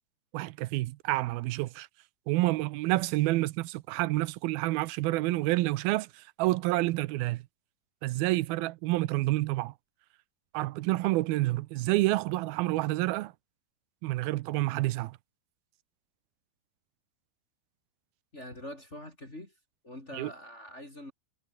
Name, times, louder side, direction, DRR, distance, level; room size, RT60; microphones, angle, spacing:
voice 1, 0.3-1.9 2.3-7.4 8.0-9.7 10.5-13.3 14.0-15.2 20.1-20.3, right 19 dB, 80° right, 2.5 m, -28 dB
voice 2, 18.3-19.5 19.8-21.1, left 1 dB, 20° left, 3.9 m, -44 dB
omnidirectional pair, 4.4 m